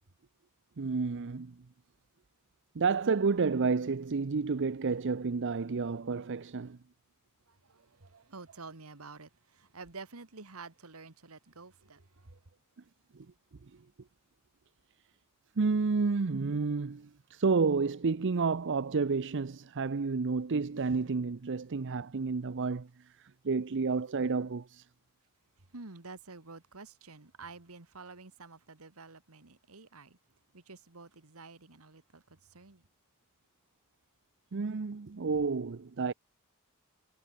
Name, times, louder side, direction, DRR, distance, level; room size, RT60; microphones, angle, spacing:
voice 1, 0.8-1.6 2.7-6.8 13.1-13.3 15.6-24.9 34.5-36.1, right 4 dB, 55° right, 0.6 m, -30 dB
voice 2, 7.5-12.4 25.7-30.2 30.5-32.9, right 4 dB, 80° right, 1.8 m, -50 dB
head